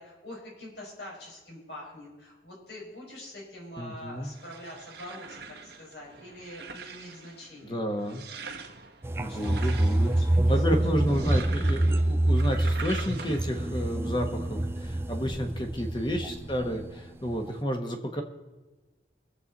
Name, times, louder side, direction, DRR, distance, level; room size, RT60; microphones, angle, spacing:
voice 1, 0.0-7.8 9.2-10.6, left 1 dB, 75° left, -3 dB, 5.1 m, -45 dB
voice 2, 3.8-4.3 7.6-8.2 9.2-10.1 10.5-18.2, equal, 25° left, 4 dB, 1.4 m, -31 dB
sound 1, 4.0-13.7, right 5 dB, 70° right, 1.1 m, -44 dB
sound 2, 9.0-16.9 17.3-17.5, right 1 dB, 15° right, 0.4 m, -27 dB
22.5 x 7.6 x 4.2 m, 1.2 s
head